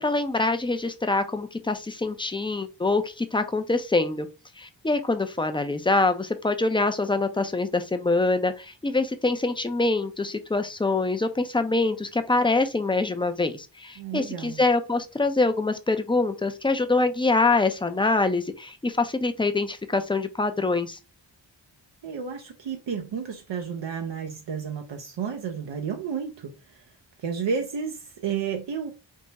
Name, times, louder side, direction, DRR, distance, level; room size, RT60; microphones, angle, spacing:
voice 1, 0.0-4.3 4.6-21.0, left 3 dB, 10° left, 0.4 m, -25 dB
voice 2, 14.0-14.6 22.0-26.9 27.2-28.9, right 6 dB, 75° right, 0.6 m, -32 dB
3.6 x 2.1 x 3.9 m
wide cardioid pair, 80°, 45 cm